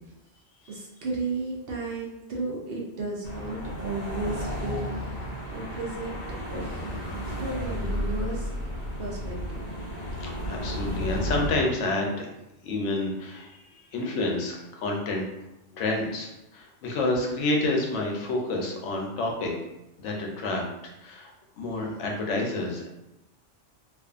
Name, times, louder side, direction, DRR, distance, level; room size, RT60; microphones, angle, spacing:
voice 1, 0.7-6.2 6.5-8.5 9.0-9.6 21.8-21.9, right 3 dB, 60° right, -3 dB, 0.7 m, -34 dB
sound 1, 3.2-11.5, equal, 40° left, 0.7 m, -33 dB
voice 2, 10.2-12.2 12.6-15.3 15.7-19.5 20.0-21.3 21.6-22.9, left 2 dB, 75° left, 0 dB, 0.9 m, -29 dB
2.5 x 2.4 x 2.3 m, 0.92 s
omnidirectional pair, 1.2 m